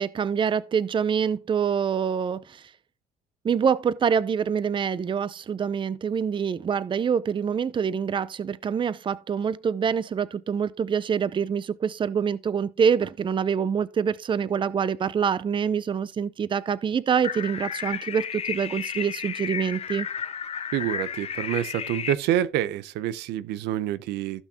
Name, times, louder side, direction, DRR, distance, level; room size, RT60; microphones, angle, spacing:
voice 1, 0.0-2.6 3.4-20.1, right 7 dB, 30° right, 0.6 m, -25 dB
sound 1, 17.2-22.1, left 7 dB, 40° left, 0.7 m, -33 dB
voice 2, 20.7-24.4, right 12 dB, 85° right, 0.7 m, -27 dB
15.5 x 6.0 x 2.9 m
cardioid pair, 110°, 17 cm